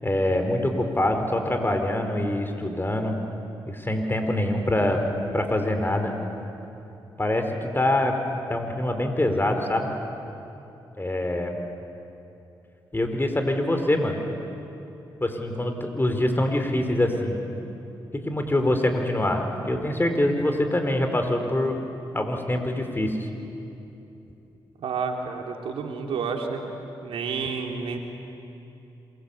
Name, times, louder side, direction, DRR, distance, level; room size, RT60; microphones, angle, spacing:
voice 1, 0.0-3.2 3.7-5.0 5.3-6.1 7.2-7.5 7.7-8.2 8.5-9.9 11.0-11.6 12.9-14.2 15.2-17.4 18.1-21.8 22.1-23.2, left 1 dB, 25° left, 5 dB, 4.6 m, -24 dB
voice 2, 24.8-26.6 27.0-28.0, right 5 dB, 80° right, 2 dB, 3.0 m, -30 dB
27.0 x 23.0 x 8.6 m, 2.9 s
supercardioid pair, 50°, 9 cm